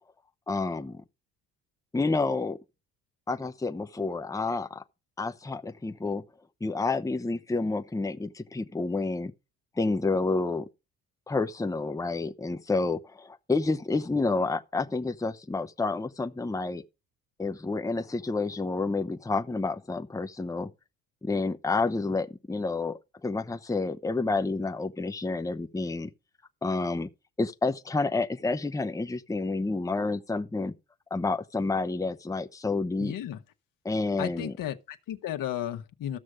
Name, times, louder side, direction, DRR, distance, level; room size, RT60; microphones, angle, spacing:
voice 1, 0.5-1.0 1.9-2.6 3.3-4.8 5.2-6.2 6.6-9.3 9.8-10.6 11.3-16.8 17.4-20.7 21.2-26.1 26.6-27.1 27.4-30.7 31.1-33.1 33.8-34.5, left 3 dB, 10° left, 0.9 m, -29 dB
voice 2, 33.0-33.4 34.2-36.2, left 11 dB, 65° left, 1.4 m, -34 dB
14.5 x 6.4 x 4.9 m
supercardioid pair, 70°, 35 cm